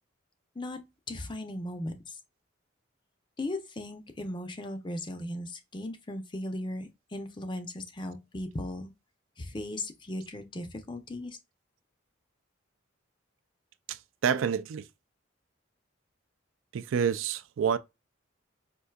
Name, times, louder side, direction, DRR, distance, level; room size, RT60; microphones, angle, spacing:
voice 1, 1.1-2.2 3.4-8.9 9.4-11.4, left 1 dB, 25° left, 0.5 m, -37 dB
voice 2, 13.9-14.8 16.7-17.8, right 7 dB, 80° right, 0.4 m, -28 dB
4.5 x 2.6 x 2.2 m
head